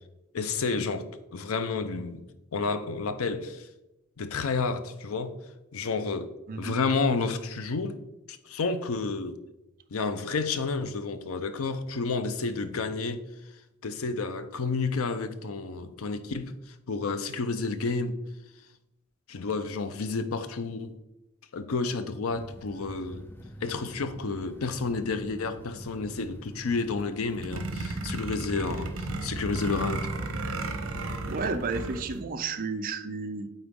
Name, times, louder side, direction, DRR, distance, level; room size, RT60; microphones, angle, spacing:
voice 1, 0.3-1.1 1.3-2.2 2.5-3.7 4.2-5.4 5.7-6.3 6.6-8.0 8.3-9.4 9.9-13.2 13.8-18.2 19.3-20.9 21.5-23.2 23.6-30.1, left 4 dB, 80° left, 0.6 m, -30 dB
voice 2, 6.5-6.8 31.3-33.5, right 4 dB, 40° right, 0.5 m, -32 dB
sound 1, 22.3-30.8, equal, 10° left, 0.5 m, -45 dB
sound 2, 27.3-32.2, right 2 dB, 75° right, 0.9 m, -34 dB
8.6 x 3.9 x 3.6 m
head